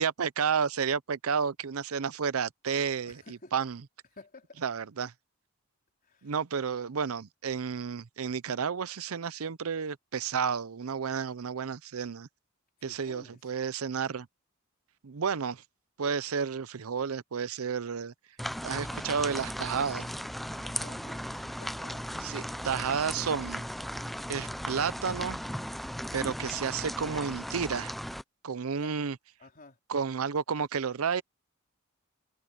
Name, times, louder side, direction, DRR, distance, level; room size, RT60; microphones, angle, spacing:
voice 1, 0.0-3.2 3.5-3.8 4.6-5.1 6.2-12.3 12.8-14.3 15.0-15.6 16.0-18.1 18.6-20.1 22.2-23.7 24.3-25.4 26.1-27.9 28.4-29.2 29.9-31.2, right 6 dB, 85° right, 0.6 m, -31 dB
voice 2, 3.1-3.5 4.1-4.6 6.0-6.3 12.8-13.4 20.6-23.2 28.8-29.0 29.4-29.8, left 3 dB, 40° left, 4.1 m, -52 dB
sound 1, 18.4-28.2, equal, ahead, 0.3 m, -37 dB
head